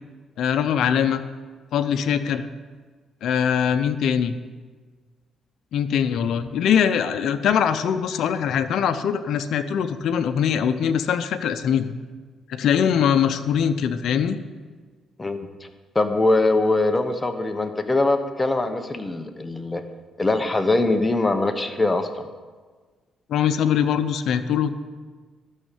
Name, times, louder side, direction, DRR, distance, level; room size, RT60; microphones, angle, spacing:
voice 1, 0.4-1.2 1.7-2.5 3.2-4.3 5.7-11.9 12.5-14.4 23.3-24.7, left 8 dB, 75° left, 9 dB, 0.7 m, -22 dB
voice 2, 15.9-19.8 20.2-22.3, left 2 dB, 20° left, 7 dB, 1.1 m, -22 dB
12.0 x 6.5 x 8.3 m, 1.4 s
cardioid pair, 90°, 0 cm